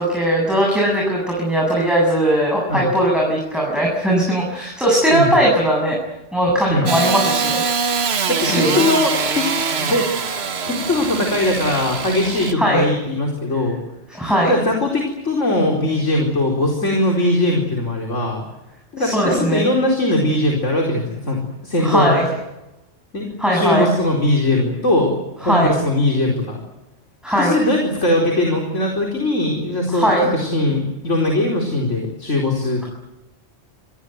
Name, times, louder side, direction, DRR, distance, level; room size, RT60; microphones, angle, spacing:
voice 1, 0.0-6.0 6.3-7.6 8.4-8.8 12.6-12.9 14.1-14.5 19.0-19.7 21.8-22.3 23.4-23.9 25.4-25.7 27.2-27.5 29.9-30.3, right 1 dB, ahead, -2 dB, 7.8 m, -18 dB
Engine starting / Sawing, 6.9-12.5, right 5 dB, 60° right, 1.5 m, -23 dB
voice 2, 8.3-9.5 9.8-10.1 10.7-13.8 14.4-18.4 18.9-22.2 23.1-23.3 23.5-26.6 27.3-32.8, left 1 dB, 85° left, 1 dB, 4.8 m, -20 dB
27.5 x 21.5 x 8.1 m, 0.98 s
omnidirectional pair, 1.2 m